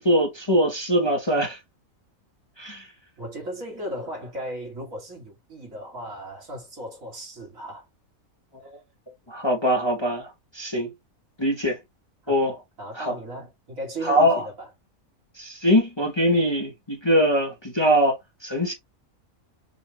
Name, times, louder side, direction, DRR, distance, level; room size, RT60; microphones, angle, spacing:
voice 1, 0.0-1.6 2.6-2.9 9.3-10.9 11.4-11.8 12.3-12.5 13.0-13.1 14.0-14.4 15.4-18.7, equal, 20° left, 1.0 m, -22 dB
voice 2, 3.2-7.9 12.2-12.4 12.8-14.7, right 1 dB, 70° right, 2.9 m, -36 dB
6.2 x 2.5 x 3.2 m
omnidirectional pair, 1.5 m